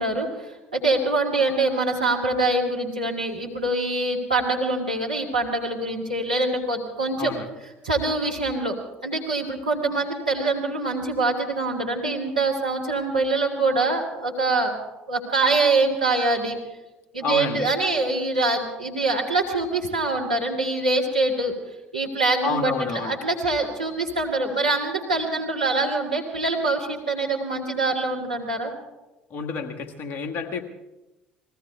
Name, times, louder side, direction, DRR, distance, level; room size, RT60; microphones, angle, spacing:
voice 1, 0.0-7.3 7.8-8.8 9.0-14.8 15.1-16.6 17.1-21.5 21.9-28.7, right 2 dB, 85° right, -3 dB, 2.5 m, -24 dB
voice 2, 7.2-7.5 17.2-17.7 22.4-23.2 29.3-30.6, left 5 dB, 45° left, 4 dB, 1.6 m, -29 dB
30.0 x 20.5 x 2.3 m, 1.0 s
figure-of-eight pair, 55°, 5 cm